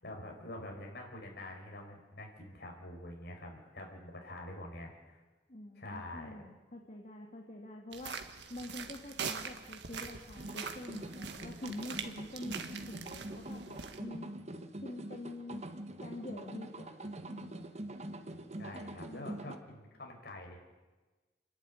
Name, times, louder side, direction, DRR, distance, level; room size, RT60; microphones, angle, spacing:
voice 1, 0.0-5.2 5.8-6.3 18.6-20.6, left 1 dB, 65° left, 1 dB, 5.3 m, -46 dB
voice 2, 5.5-8.1 8.5-14.3 14.8-15.6 16.0-17.6 19.0-19.7, left 1 dB, 45° left, 1 dB, 2.0 m, -46 dB
sound 1, 7.9-14.0, right 6 dB, 75° right, 1.7 m, -43 dB
sound 2, 10.4-19.6, right 1 dB, 40° right, 1.3 m, -44 dB
29.5 x 11.5 x 9.8 m, 1.2 s
head